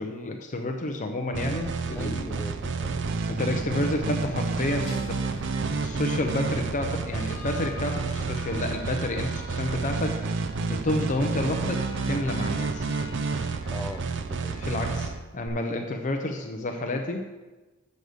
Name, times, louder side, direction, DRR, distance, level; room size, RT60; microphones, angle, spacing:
voice 1, 0.0-2.4 3.3-5.2 5.8-12.9 14.5-17.3, left 1 dB, 40° left, 4 dB, 0.6 m, -30 dB
sound 1, 1.3-15.5, right 4 dB, 60° right, 0.5 m, -30 dB
voice 2, 1.8-3.0 13.7-14.6, left 1 dB, 5° left, 4 dB, 0.3 m, -40 dB
sound 2, 3.8-15.2, left 4 dB, 80° left, 1.0 m, -48 dB
7.9 x 5.3 x 6.5 m, 1.2 s
head